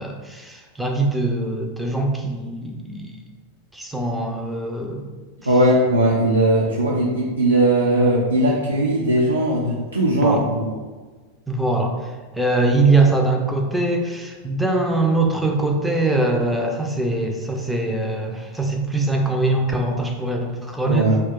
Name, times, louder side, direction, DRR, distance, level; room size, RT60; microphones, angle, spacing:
voice 1, 0.0-3.2 3.7-5.1 10.2-10.4 11.5-12.0 12.3-21.1, right 2 dB, 5° right, 1 dB, 0.4 m, -22 dB
voice 2, 5.5-10.7 20.9-21.2, right 1 dB, 80° right, -3 dB, 0.3 m, -19 dB
2.2 x 2.2 x 3.6 m, 1.3 s
figure-of-eight pair, 90°, 0 cm